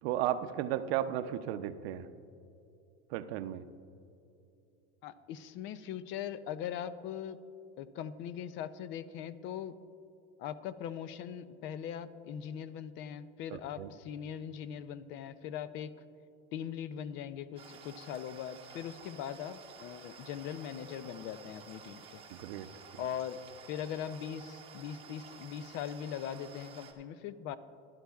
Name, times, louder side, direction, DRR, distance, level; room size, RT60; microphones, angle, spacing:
voice 1, 0.0-2.1 3.1-3.6 13.5-13.9 22.3-22.7, right 11 dB, 70° right, 11 dB, 0.6 m, -34 dB
voice 2, 5.0-7.4 7.8-9.7 10.4-15.9 16.5-22.2 23.0-23.4 23.7-27.6, left 9 dB, 40° left, 15 dB, 0.4 m, -40 dB
sound 1, 17.6-26.9, right 5 dB, 15° right, 1.0 m, -52 dB
15.5 x 11.5 x 2.3 m, 2.7 s
supercardioid pair, 150°, 32 cm